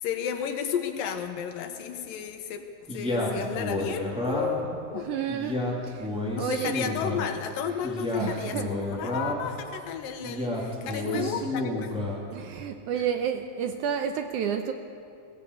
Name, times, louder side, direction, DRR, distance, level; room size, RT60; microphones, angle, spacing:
voice 1, 0.0-5.2 6.4-11.9, left 8 dB, 75° left, 2.9 m, -33 dB
Male speech man speaking, 2.9-4.7 5.3-7.3 7.8-9.5 10.2-12.2, left 1 dB, ahead, 2.5 m, -30 dB
voice 2, 4.9-6.8 8.2-8.8 10.9-11.6 12.1-14.7, right 8 dB, 75° right, 2.0 m, -31 dB
21.5 x 16.0 x 8.3 m
omnidirectional pair, 4.1 m